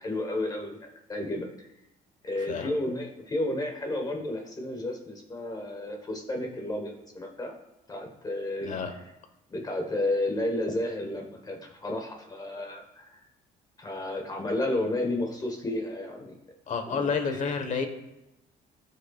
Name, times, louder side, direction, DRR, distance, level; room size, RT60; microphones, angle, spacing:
voice 1, 0.0-1.7 2.2-7.5 7.9-8.8 9.5-13.2 13.8-16.3 16.9-17.4, left 1 dB, 25° left, 3 dB, 1.3 m, -32 dB
voice 2, 8.6-8.9 16.7-17.9, left 5 dB, 45° left, 7 dB, 1.2 m, -29 dB
13.0 x 5.4 x 2.4 m, 0.92 s
cardioid pair, 110°, 17 cm